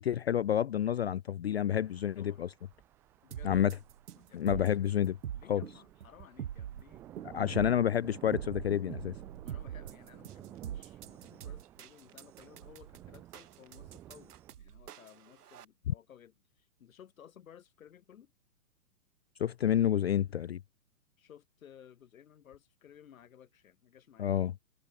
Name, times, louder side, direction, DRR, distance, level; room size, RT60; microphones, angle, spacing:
voice 1, 0.0-2.5 3.4-3.7 4.3-5.2 5.5-5.6 7.2-9.1 15.9-16.0 19.4-20.6 24.2-24.5, left 10 dB, 45° left, 0.5 m, -29 dB
sound 1, 1.8-14.5, right 13 dB, 5° right, 0.6 m, -53 dB
voice 2, 3.2-3.8 4.1-4.8 5.3-7.1 9.4-18.3 21.2-24.3, left 9 dB, 60° left, 7.1 m, -57 dB
sound 2, 3.3-15.6, right 10 dB, 90° right, 0.9 m, -43 dB
hypercardioid pair, 155°, 45 cm